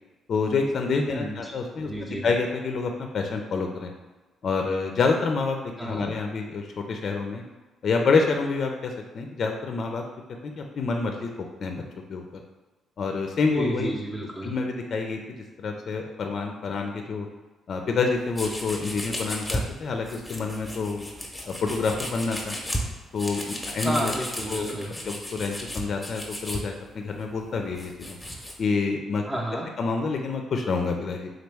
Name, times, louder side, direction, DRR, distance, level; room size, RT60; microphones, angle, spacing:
voice 1, 0.3-3.9 4.4-7.4 7.8-10.0 10.4-11.3 11.6-11.8 12.1-12.4 13.0-13.9 14.4-17.3 17.7-21.1 21.5-22.5 23.1-24.1 24.5-24.8 25.0-28.2 28.6-29.2 29.8-31.3, left 4 dB, 55° left, 3 dB, 0.4 m, -27 dB
voice 2, 1.1-1.5 1.8-2.3 5.8-6.1 13.5-14.5 23.8-24.9 29.3-29.7, right 1 dB, 20° right, -5 dB, 0.6 m, -31 dB
sound 1, 18.3-19.6 20.0-26.6 27.2-28.6, left 1 dB, 10° left, 0.8 m, -35 dB
3.8 x 3.0 x 3.3 m, 1.2 s
cardioid pair, 90°, 0 cm